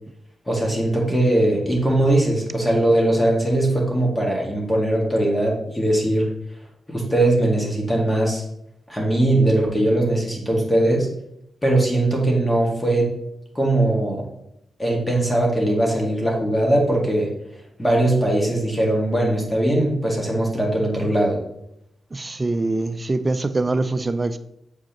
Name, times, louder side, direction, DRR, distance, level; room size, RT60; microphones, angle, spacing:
voice 1, 0.5-6.3 6.9-8.4 8.9-11.1 11.6-13.2 13.5-14.2 14.8-17.3 17.8-21.4, right 1 dB, 15° left, -1 dB, 2.1 m, -20 dB
voice 2, 22.1-24.4, right 2 dB, 30° right, 11 dB, 0.5 m, -23 dB
7.5 x 4.8 x 3.0 m, 0.79 s
cardioid pair, 60°, 0 cm